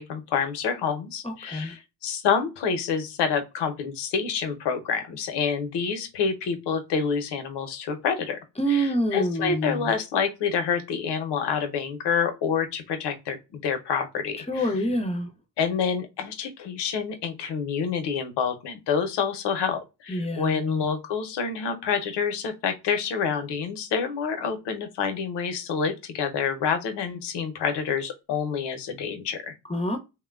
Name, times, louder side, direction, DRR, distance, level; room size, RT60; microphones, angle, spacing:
voice 1, 0.0-8.4 8.7-14.7 15.6-29.5, left 6 dB, 80° left, 0.7 m, -28 dB
voice 2, 1.2-1.7 8.6-9.9 14.5-15.3 20.1-20.8 29.7-30.0, equal, 15° left, 0.5 m, -27 dB
3.0 x 2.1 x 2.2 m
cardioid pair, 80°, 41 cm